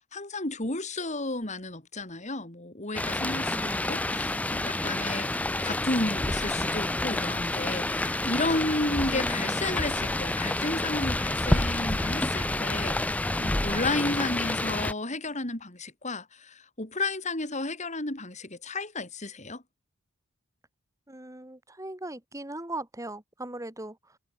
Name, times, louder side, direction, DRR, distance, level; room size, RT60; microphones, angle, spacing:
voice 1, 0.1-5.3 5.6-19.6, left 2 dB, 30° left, 3.4 m, -32 dB
sound 1, 2.9-14.9, left 1 dB, 5° left, 0.3 m, -28 dB
voice 2, 3.5-3.9 9.1-9.5 21.1-24.2, right 1 dB, 15° right, 2.8 m, -39 dB
head